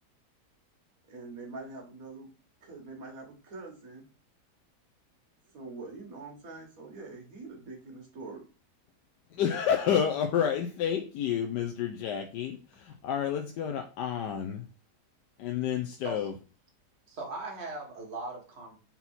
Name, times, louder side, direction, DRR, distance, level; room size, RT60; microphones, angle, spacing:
voice 1, 1.1-2.3 2.6-4.0 5.5-8.4, right 3 dB, 55° right, 1 dB, 2.0 m, -44 dB
voice 2, 9.3-14.7 15.4-16.3, left 8 dB, 85° left, 5 dB, 1.3 m, -30 dB
voice 3, 17.1-18.8, right 3 dB, 40° right, -1 dB, 1.8 m, -39 dB
4.4 x 4.1 x 5.5 m, 0.35 s
omnidirectional pair, 1.8 m